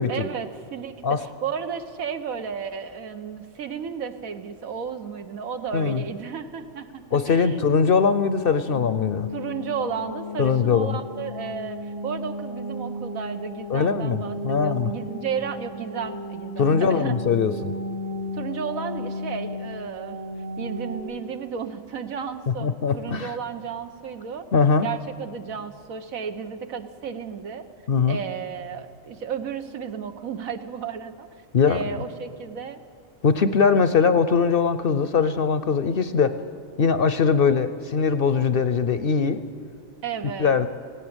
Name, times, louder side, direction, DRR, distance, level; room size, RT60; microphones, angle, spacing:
voice 1, 0.1-7.6 9.3-17.1 18.3-20.3 20.6-24.5 24.8-27.7 28.1-31.3 31.6-32.8 40.0-40.6, right 7 dB, 85° right, 8 dB, 1.5 m, -33 dB
voice 2, 7.1-9.3 10.4-11.0 13.7-14.9 16.6-17.7 22.6-23.3 24.5-24.9 27.9-28.2 31.5-32.0 33.2-36.4 36.8-39.4 40.4-40.7, left 5 dB, 55° left, 12 dB, 0.7 m, -21 dB
sound 1, 8.7-21.0, left 1 dB, 60° right, 2.7 m, -34 dB
17.5 x 17.0 x 8.8 m, 2.1 s
omnidirectional pair, 1.4 m